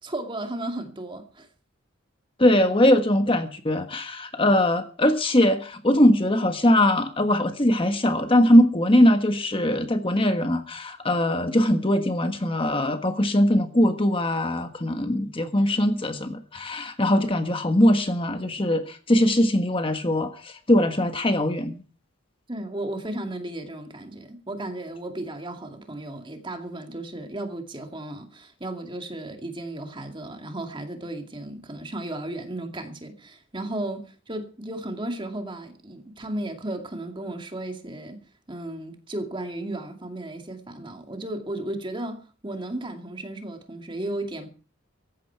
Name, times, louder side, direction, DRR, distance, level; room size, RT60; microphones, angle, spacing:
voice 1, 0.0-1.5 22.5-38.2 38.5-44.5, right 1 dB, 25° right, 2.3 m, -34 dB
voice 2, 2.4-21.8, left 1 dB, 25° left, 1.4 m, -21 dB
17.5 x 15.0 x 4.6 m
head